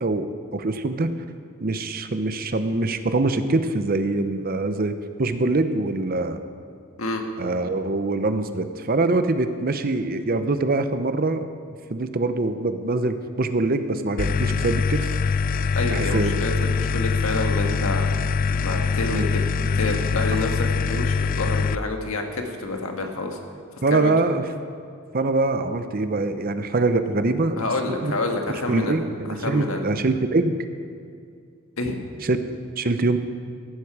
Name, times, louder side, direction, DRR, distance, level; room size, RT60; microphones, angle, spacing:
voice 1, 0.0-1.1 1.6-6.4 7.4-11.5 11.9-15.1 15.9-16.4 19.1-19.3 23.8-24.4 25.1-27.6 27.9-28.1 28.7-30.6 32.2-32.4 32.8-33.2, right 2 dB, 45° right, 10 dB, 0.7 m, -24 dB
sound 1, 14.2-21.7, left 5 dB, 40° left, 0.3 m, -23 dB
voice 2, 15.7-18.1 18.6-19.4 19.7-23.4 23.9-24.1 27.6-29.0 29.3-29.8 31.8-32.0, left 2 dB, 80° left, 3 dB, 1.5 m, -28 dB
15.0 x 12.0 x 4.8 m, 2.3 s
head